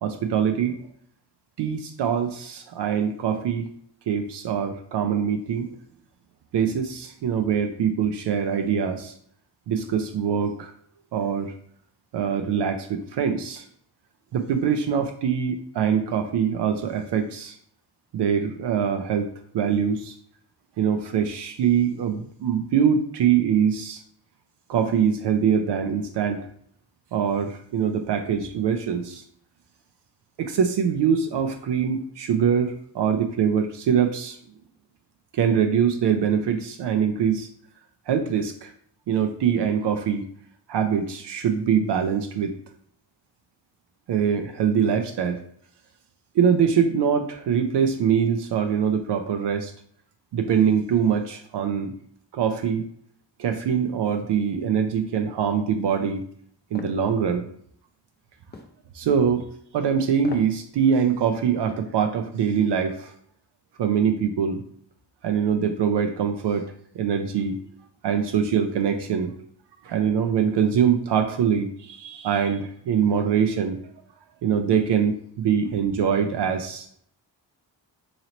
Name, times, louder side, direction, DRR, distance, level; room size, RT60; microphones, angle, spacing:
voice 1, 0.0-0.8 1.6-3.7 4.1-5.7 6.5-9.1 9.7-10.7 11.1-11.5 12.1-13.6 14.3-17.6 18.1-19.3 19.5-20.2 20.8-24.0 24.7-26.4 27.1-29.2 30.4-34.4 35.3-37.5 38.1-38.7 39.1-40.2 40.7-42.5 44.1-45.4 46.3-49.7 50.3-51.9 52.3-52.8 53.4-56.2 56.7-57.5 58.9-59.5 59.7-63.1 63.8-64.6 65.2-66.7 66.9-67.6 68.0-69.3 69.8-73.8 74.4-76.9, right 7 dB, 65° right, 6 dB, 0.5 m, -23 dB
sound 1, 56.8-57.0 58.5-58.8 60.2-60.6 61.0-61.1, left 3 dB, 25° left, 0.5 m, -39 dB
3.0 x 2.9 x 3.9 m, 0.64 s
cardioid pair, 80°, 44 cm